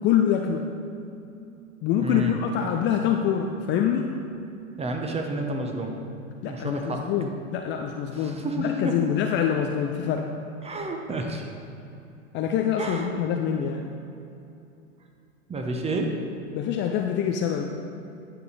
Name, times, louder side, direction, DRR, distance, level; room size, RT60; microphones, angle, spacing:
voice 1, 0.0-0.6 1.8-4.1 6.4-10.3 12.3-13.8 16.5-17.7, left 8 dB, 30° left, 3 dB, 0.5 m, -25 dB
voice 2, 2.0-2.4 4.8-6.0 6.4-7.1 8.1-8.9 10.6-11.5 12.8-13.1 15.5-16.1, right 2 dB, 15° right, 3 dB, 1.0 m, -30 dB
9.9 x 6.8 x 4.1 m, 2.7 s
hypercardioid pair, 95°, 40 cm